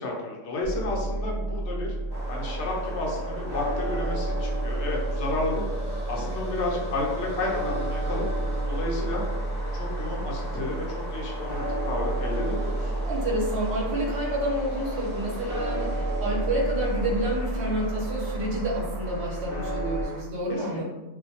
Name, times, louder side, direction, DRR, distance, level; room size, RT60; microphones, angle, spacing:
voice 1, 0.0-1.9 2.3-5.6 6.1-8.3 8.7-9.2 9.7-12.9 15.9-16.0 20.5-20.6, left 2 dB, 65° left, -2 dB, 0.9 m, -31 dB
sound 1, 0.6-20.1, right 1 dB, ahead, 1.0 m, -31 dB
sound 2, 2.1-20.2, right 1 dB, 30° left, 0.4 m, -39 dB
voice 2, 13.0-20.8, right 1 dB, 60° right, -4 dB, 1.0 m, -29 dB
2.5 x 2.2 x 2.7 m, 1.1 s
omnidirectional pair, 1.4 m